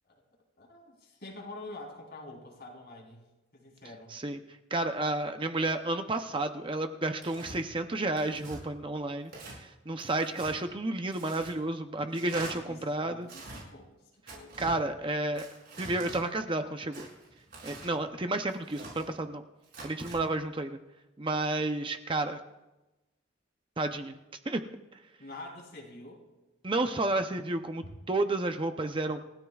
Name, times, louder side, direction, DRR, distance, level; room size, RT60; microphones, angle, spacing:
voice 1, 0.6-3.2 3.5-4.1 12.3-14.7 17.7-18.1 25.2-26.2, left 2 dB, 50° left, 0 dB, 3.7 m, -47 dB
voice 2, 4.7-9.3 9.6-13.3 14.6-15.5 15.8-17.1 17.6-19.4 19.8-20.8 21.2-22.4 23.8-24.1 24.5-24.6 26.6-29.2, right 2 dB, 25° right, 6 dB, 0.6 m, -31 dB
Tearing, 7.2-7.6 8.2-8.6 9.2-9.6 10.0-10.5 11.1-11.5 12.1-12.5 13.2-13.6 14.3-14.8 15.3-16.2 16.9-17.9 18.5-19.1 19.6-20.2, right 2 dB, 55° right, 6.9 m, -45 dB
28.5 x 16.5 x 2.4 m, 1.0 s
head